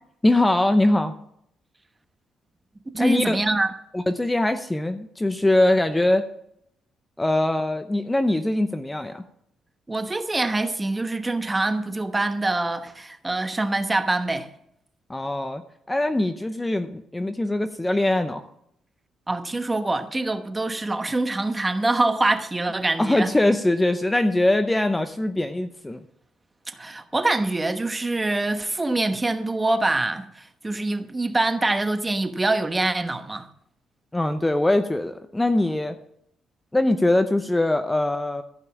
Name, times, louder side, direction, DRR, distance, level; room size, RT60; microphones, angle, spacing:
voice 1, 0.2-1.1 3.0-3.4 3.9-6.2 7.2-9.2 15.1-15.6 15.9-18.4 23.0-26.0 34.1-36.0 36.7-38.4, left 1 dB, 15° left, 0.7 m, -22 dB
voice 2, 2.9-3.7 9.9-14.5 19.3-23.3 26.7-33.5, right 2 dB, 20° right, 1.1 m, -25 dB
14.5 x 5.5 x 7.3 m
cardioid pair, 90°, 0 cm